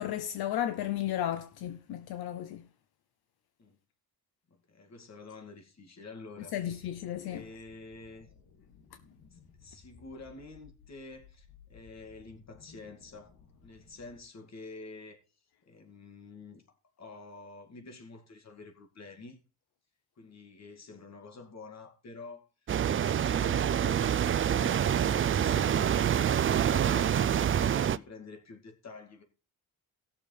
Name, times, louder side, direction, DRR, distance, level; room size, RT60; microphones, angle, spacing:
voice 1, 0.0-2.7 6.5-7.4, left 11 dB, 80° left, 0.7 m, -34 dB
voice 2, 4.5-6.9 7.2-8.3 9.3-13.4 13.6-16.6 17.0-19.4 20.2-26.1 26.4-29.2, left 3 dB, 45° left, 2.3 m, -48 dB
sound 1, 6.6-14.2, left 6 dB, 65° left, 2.3 m, -59 dB
sound 2, 22.7-28.0, right 9 dB, 35° right, 0.4 m, -26 dB
17.0 x 6.8 x 3.3 m
cardioid pair, 95°, 37 cm